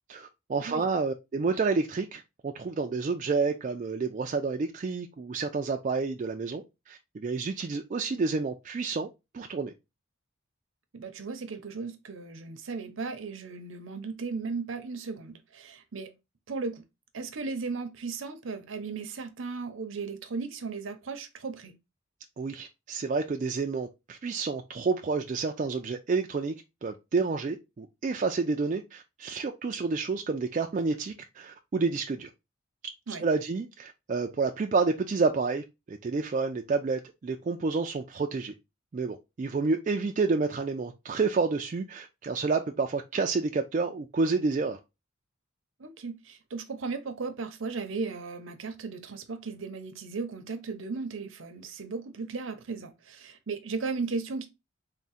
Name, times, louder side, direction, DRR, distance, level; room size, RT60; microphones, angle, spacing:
voice 1, 0.1-9.7 22.4-26.5 26.8-32.3 33.2-38.5 38.9-44.8, right 4 dB, 35° right, 0.3 m, -29 dB
voice 2, 10.9-16.1 16.5-16.8 17.1-21.7 33.1-33.2 45.8-54.5, right 4 dB, 75° right, 0.6 m, -36 dB
3.6 x 2.1 x 4.0 m
head